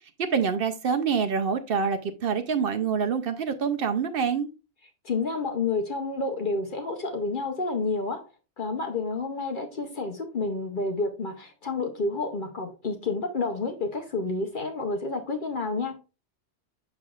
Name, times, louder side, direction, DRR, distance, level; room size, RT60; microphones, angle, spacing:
voice 1, 0.2-4.5, right 6 dB, 65° right, 0.7 m, -26 dB
voice 2, 5.0-8.3 8.6-16.0, left 3 dB, 50° left, 0.8 m, -29 dB
6.7 x 6.1 x 2.3 m
omnidirectional pair, 1.1 m